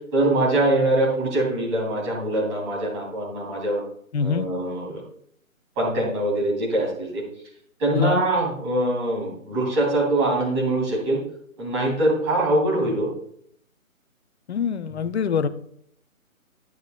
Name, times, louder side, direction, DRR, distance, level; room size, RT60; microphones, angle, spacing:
voice 1, 0.1-3.8 4.2-5.0 5.8-7.2 7.8-11.2 11.6-13.1, right 1 dB, 20° right, -4 dB, 2.7 m, -23 dB
voice 2, 4.1-4.5 7.9-8.2 14.5-15.5, left 6 dB, 50° left, 11 dB, 0.6 m, -24 dB
10.5 x 8.2 x 2.2 m, 0.67 s
figure-of-eight pair, 145°, 42 cm